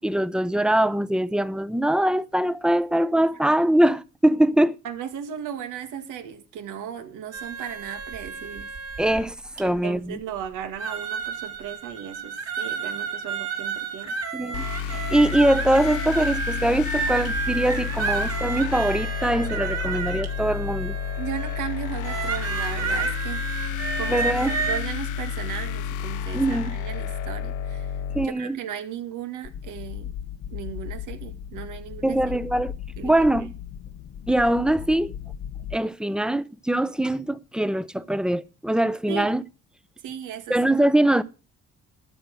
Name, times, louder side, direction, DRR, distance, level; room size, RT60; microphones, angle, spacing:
voice 1, 0.0-4.8 9.0-10.2 14.3-21.0 24.1-24.6 26.3-26.7 28.1-28.6 32.0-32.7 33.0-33.5 34.3-35.1 35.7-39.4 40.5-41.2, right 1 dB, 5° right, 0.7 m, -22 dB
voice 2, 4.8-8.7 9.6-14.2 21.2-23.5 24.0-28.0 28.2-30.1 30.5-32.2 33.0-33.1 39.1-39.3 40.0-40.6, right 9 dB, 90° right, 2.0 m, -36 dB
sound 1, 7.3-9.8 10.4-10.5 10.8-24.8, right 5 dB, 55° right, 2.7 m, -31 dB
sound 2, 14.5-28.2, left 8 dB, 90° left, 0.8 m, -30 dB
sound 3, 29.4-35.8, left 10 dB, 60° left, 0.9 m, -37 dB
13.0 x 8.0 x 6.4 m
cardioid pair, 90°, 30 cm